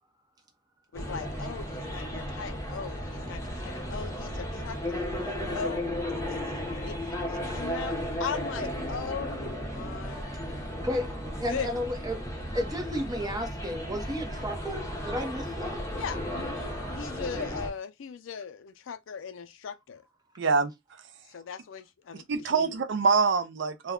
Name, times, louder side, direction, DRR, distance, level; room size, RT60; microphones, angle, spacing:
voice 1, 0.9-5.1 5.5-5.9 6.3-10.3 11.5-11.9 15.9-20.0 21.3-22.7, left 6 dB, 80° left, 0.4 m, -39 dB
sound 1, 0.9-17.7, equal, 15° left, 0.7 m, -34 dB
voice 2, 11.4-12.2 12.5-15.8, equal, 20° right, 0.7 m, -33 dB
voice 3, 20.4-20.7 22.3-23.9, right 5 dB, 65° right, 0.4 m, -25 dB
2.3 x 2.2 x 3.5 m
head